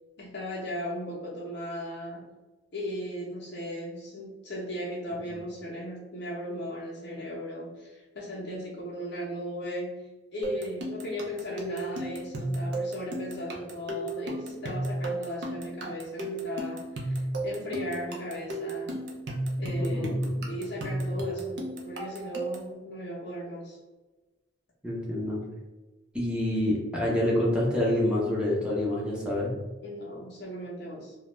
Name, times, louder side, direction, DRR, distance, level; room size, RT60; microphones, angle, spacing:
voice 1, 0.2-2.3 2.7-19.0 19.6-20.2 20.4-23.8 29.8-31.2, equal, 60° left, -5 dB, 0.6 m, -37 dB
sound 1, 10.4-22.7, right 1 dB, 60° right, 0.5 m, -33 dB
voice 2, 19.8-20.5 24.8-25.4 26.1-29.5, left 1 dB, 5° right, -5 dB, 0.7 m, -27 dB
2.3 x 2.1 x 3.0 m, 1.2 s
head